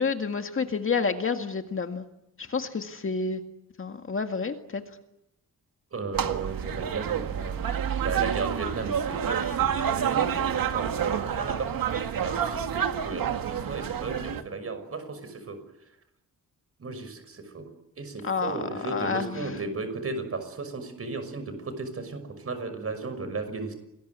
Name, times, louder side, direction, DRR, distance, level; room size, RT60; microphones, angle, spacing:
voice 1, 0.0-2.1 2.4-3.4 3.8-4.8 18.2-19.6, left 5 dB, 40° left, 6 dB, 2.0 m, -29 dB
voice 2, 5.9-7.7 8.0-11.7 12.2-15.6 16.8-17.7 18.0-23.7, right 3 dB, 40° right, 9 dB, 6.1 m, -35 dB
sound 1, 6.1-14.4, right 8 dB, 85° right, 2.1 m, -28 dB
28.0 x 21.0 x 9.5 m, 0.86 s
wide cardioid pair, 145°, 34 cm